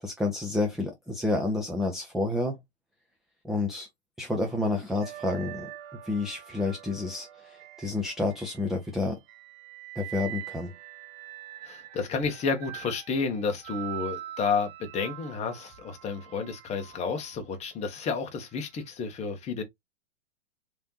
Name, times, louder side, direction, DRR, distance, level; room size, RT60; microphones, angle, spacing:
voice 1, 0.0-2.6 3.4-3.9 4.2-5.7 6.0-9.2 10.0-10.7, left 2 dB, ahead, 0.3 m, -29 dB
sound 1, 4.5-8.8 9.3-17.4 18.4-18.7, right 14 dB, 35° right, 0.9 m, -44 dB
voice 2, 11.6-19.6, left 5 dB, 20° left, 1.1 m, -31 dB
3.6 x 3.3 x 2.8 m
hypercardioid pair, 115°, 32 cm